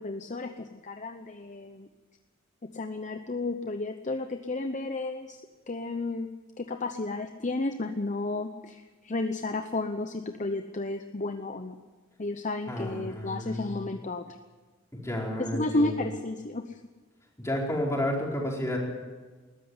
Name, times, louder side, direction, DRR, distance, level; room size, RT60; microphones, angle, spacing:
voice 1, 0.0-1.9 2.7-5.4 5.7-6.3 6.6-11.8 12.2-14.4 15.4-16.8, left 2 dB, 35° left, 7 dB, 0.8 m, -32 dB
voice 2, 12.7-13.7 14.9-16.1 17.4-18.8, left 1 dB, 15° left, -2 dB, 4.6 m, -31 dB
21.0 x 13.5 x 9.7 m, 1.4 s
head